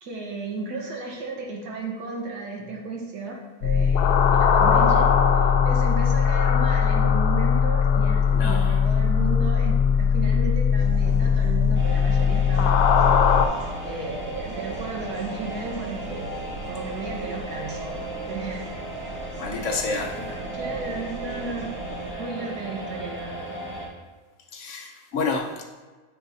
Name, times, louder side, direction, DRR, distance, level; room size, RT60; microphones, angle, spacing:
voice 1, 0.0-5.1 5.4-13.1 13.8-16.4 16.7-18.0 18.3-18.6 19.5-21.7 22.2-23.5, right 3 dB, 85° right, 0 dB, 1.7 m, -34 dB
sound 1, 3.6-13.5, left 6 dB, 85° left, 1.1 m, -19 dB
voice 2, 8.3-8.8 19.4-20.1 24.5-25.6, left 4 dB, 60° left, 2 dB, 0.9 m, -29 dB
sound 2, 10.8-22.1, right 1 dB, 60° right, 1.6 m, -40 dB
sound 3, 11.7-23.9, right 1 dB, 10° right, 1.3 m, -36 dB
10.0 x 4.7 x 2.7 m, 1.3 s
omnidirectional pair, 1.6 m